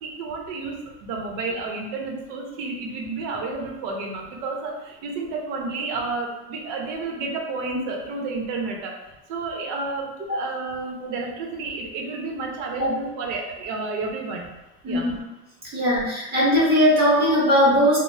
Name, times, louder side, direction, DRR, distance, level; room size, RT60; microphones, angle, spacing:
voice 1, 0.0-8.9 9.3-14.5 14.8-15.2, right 3 dB, 75° right, 0 dB, 0.8 m, -31 dB
voice 2, 14.8-15.2 15.7-18.0, equal, 30° right, -7 dB, 0.8 m, -19 dB
2.7 x 2.1 x 3.2 m, 1.0 s
cardioid pair, 150°, 32 cm